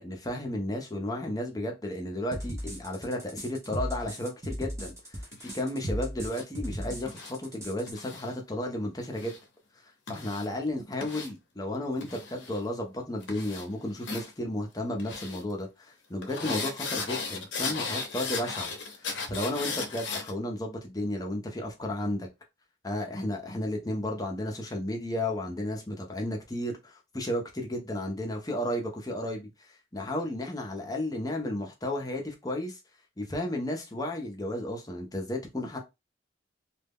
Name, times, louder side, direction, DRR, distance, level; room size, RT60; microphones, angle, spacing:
voice 1, 0.0-5.2 5.5-9.4 10.1-18.7 19.3-22.3 22.8-32.8 33.2-35.8, left 1 dB, 20° left, 0.5 m, -33 dB
sound 1, 2.3-7.9, equal, 15° right, 0.7 m, -36 dB
sound 2, 5.3-5.5 6.2-6.4 7.1-7.3 7.9-8.3 9.0-9.4 10.1-10.5 11.0-11.3 12.0-12.6 13.2-13.7 14.0-14.3 15.0-15.4 16.2-20.3, left 4 dB, 75° left, 0.6 m, -36 dB
2.2 x 2.0 x 3.4 m
head